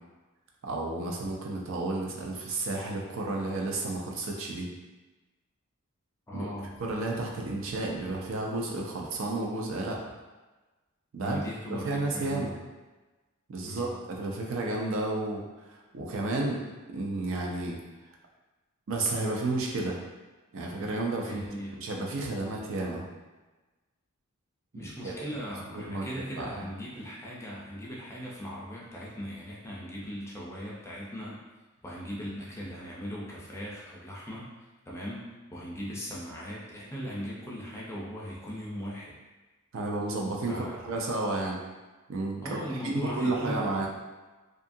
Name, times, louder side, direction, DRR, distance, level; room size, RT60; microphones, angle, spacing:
voice 1, 0.6-4.7 6.3-6.5 6.8-10.0 11.1-11.4 11.7-12.5 13.5-15.4 15.9-16.6 16.9-17.8 18.9-20.0 20.5-21.4 21.8-23.1 24.8-25.1 25.7-26.1 26.4-26.6 39.7-41.6 42.1-42.6 42.8-43.9, right 2 dB, 60° right, -1 dB, 0.4 m, -31 dB
voice 2, 6.3-6.7 11.2-12.6 13.7-13.9 21.2-21.8 24.7-31.4 31.8-35.2 35.5-39.2 40.5-40.9 42.4-43.7, equal, 10° left, -5 dB, 0.4 m, -38 dB
2.7 x 2.4 x 2.6 m, 1.2 s
head